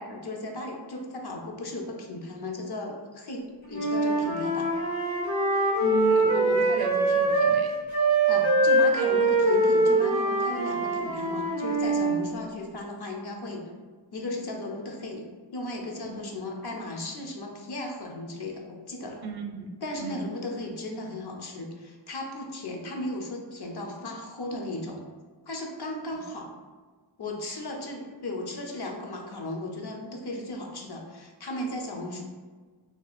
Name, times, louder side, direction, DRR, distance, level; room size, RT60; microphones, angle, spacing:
voice 1, 0.0-4.7 8.2-13.7 14.1-19.2 19.8-25.0 25.5-26.5 27.2-32.2, left 1 dB, 60° left, 1 dB, 0.7 m, -36 dB
Wind instrument woodwind instrument, 3.7-7.6 7.9-12.2, right 2 dB, 90° left, 1.5 m, -23 dB
voice 2, 5.8-7.7 16.0-16.2 19.2-19.7 20.0-20.2 27.4-27.5, right 3 dB, 55° right, 3 dB, 0.6 m, -34 dB
2.7 x 2.4 x 4.1 m, 1.4 s
wide cardioid pair, 80°, 45 cm